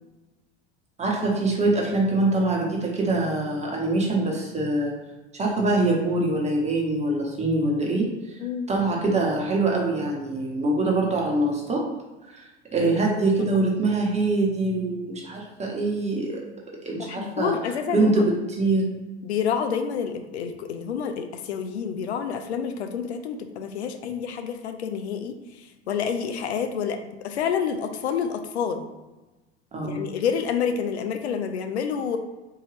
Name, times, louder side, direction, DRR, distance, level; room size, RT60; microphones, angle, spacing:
voice 1, 1.0-4.9 5.3-8.1 8.7-11.8 12.7-16.4 16.8-17.5 17.9-19.0 29.7-30.1, right 2 dB, 20° right, -2 dB, 1.0 m, -24 dB
voice 2, 16.9-18.2 19.2-28.8 29.8-32.2, left 7 dB, 70° left, 7 dB, 0.5 m, -28 dB
3.8 x 2.7 x 3.2 m, 1.1 s
figure-of-eight pair, 75°, 34 cm